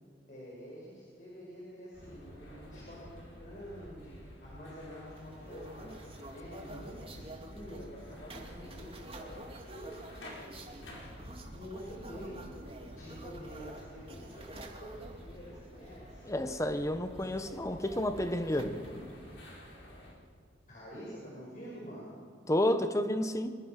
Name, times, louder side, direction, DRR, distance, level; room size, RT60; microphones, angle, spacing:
voice 1, 0.3-6.0 6.3-9.4 9.7-10.8 11.5-12.5 12.9-16.3 20.7-22.2, equal, 45° left, 5.6 m, -47 dB
sound 1, 1.9-20.1, equal, 85° left, 5.6 m, -51 dB
sound 2, 5.1-19.4, right 1 dB, 30° right, 2.6 m, -50 dB
voice 2, 16.3-18.8 22.5-23.6, left 1 dB, 15° left, 1.1 m, -30 dB
24.5 x 23.5 x 6.0 m
head